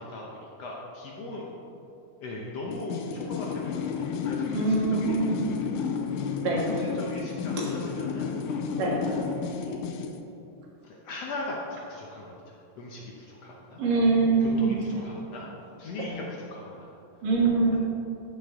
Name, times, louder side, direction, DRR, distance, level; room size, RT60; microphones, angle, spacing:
voice 1, 0.0-1.6 2.2-6.1 6.4-9.2 9.6-9.9 10.8-13.8 14.4-15.5 15.8-16.9 17.7-17.8, left 2 dB, 65° left, -3 dB, 1.7 m, -39 dB
sound 1, 2.7-10.2, left 6 dB, 85° left, 2.2 m, -32 dB
voice 2, 4.5-5.5 6.4-6.6 8.8-9.0 13.8-14.8 16.0-16.1 17.2-17.8, right 3 dB, 80° right, -3 dB, 3.2 m, -24 dB
13.5 x 7.5 x 3.6 m, 2.8 s
omnidirectional pair, 3.8 m